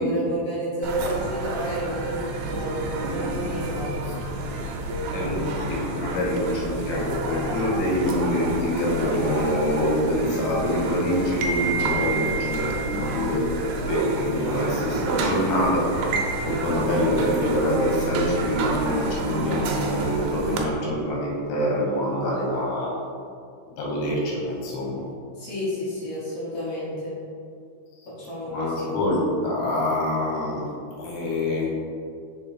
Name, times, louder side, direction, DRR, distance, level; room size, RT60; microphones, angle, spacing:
voice 1, 0.0-3.9 4.8-5.9 25.4-27.1 28.1-28.9, equal, 55° left, -9 dB, 1.8 m, -30 dB
sound 1, 0.8-20.6, right 3 dB, 80° right, 2.5 m, -29 dB
voice 2, 5.1-22.9 23.8-25.0 28.5-30.7 31.0-31.8, left 1 dB, 80° left, -3 dB, 3.2 m, -25 dB
6.4 x 4.0 x 4.3 m, 2.4 s
omnidirectional pair, 4.4 m